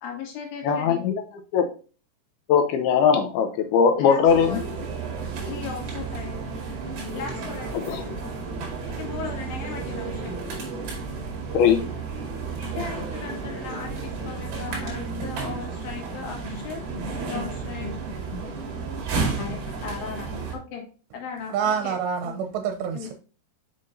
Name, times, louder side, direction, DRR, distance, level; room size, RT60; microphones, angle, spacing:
voice 1, 0.0-1.0 4.0-4.7 5.4-6.4 7.1-8.3 8.9-10.3 12.7-16.8 17.2-17.9 19.4-20.8 21.1-22.0 22.2-22.4 22.9-23.1, left 6 dB, 65° left, 3.1 m, -37 dB
voice 2, 0.6-1.2 1.5-1.7 2.5-4.6 7.9-8.0 11.5-11.8, left 7 dB, 80° left, 2.4 m, -20 dB
sound 1, 4.3-20.6, right 4 dB, 60° right, 3.9 m, -32 dB
voice 3, 21.5-23.1, right 7 dB, 90° right, 2.9 m, -27 dB
7.7 x 5.6 x 2.6 m
omnidirectional pair, 5.0 m